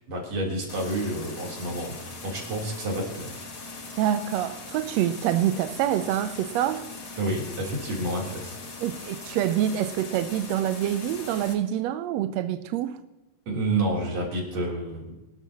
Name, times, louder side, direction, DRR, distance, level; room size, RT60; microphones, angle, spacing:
voice 1, 0.1-3.3 7.2-8.6 13.5-15.1, right 2 dB, 55° right, 4.6 m, -29 dB
sound 1, 0.7-11.5, left 3 dB, 40° left, 1.7 m, -40 dB
voice 2, 4.0-6.9 8.8-13.0, right 11 dB, 80° right, 1.6 m, -26 dB
24.0 x 12.5 x 2.9 m
omnidirectional pair, 3.5 m